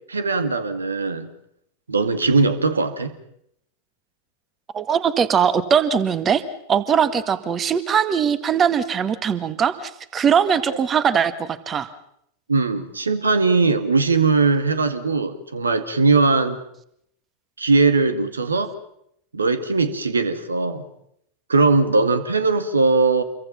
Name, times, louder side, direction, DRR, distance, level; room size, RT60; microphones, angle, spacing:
voice 1, 0.1-1.3 1.9-3.1 12.5-16.6 17.6-18.7 19.3-20.8 21.5-23.2, right 3 dB, 75° right, 11 dB, 2.1 m, -20 dB
voice 2, 4.7-6.4 6.7-11.9, right 7 dB, 25° right, 13 dB, 1.7 m, -20 dB
28.0 x 23.0 x 5.8 m, 0.74 s
figure-of-eight pair, 90°, 0 cm